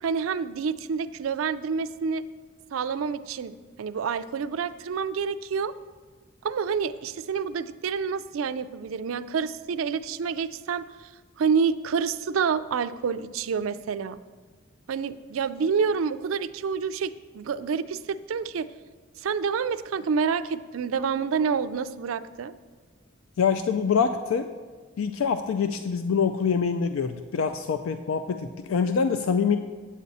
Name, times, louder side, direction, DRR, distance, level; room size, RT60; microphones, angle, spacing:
voice 1, 0.0-2.2 2.7-3.5 3.8-5.7 6.4-10.8 11.4-14.2 14.9-18.7 19.2-22.5, right 6 dB, 85° right, 13 dB, 0.4 m, -28 dB
voice 2, 23.4-24.5 25.0-29.6, left 6 dB, 85° left, 9 dB, 0.4 m, -25 dB
8.4 x 8.3 x 4.1 m, 1.4 s
head